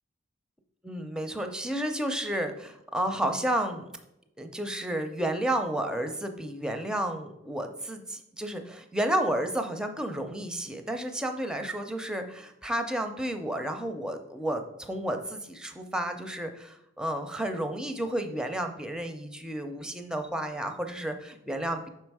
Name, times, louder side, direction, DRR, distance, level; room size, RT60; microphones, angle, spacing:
voice 1, 0.8-3.9 4.4-21.9, right 1 dB, 5° right, 6 dB, 0.5 m, -31 dB
5.7 x 4.4 x 4.7 m, 0.83 s
head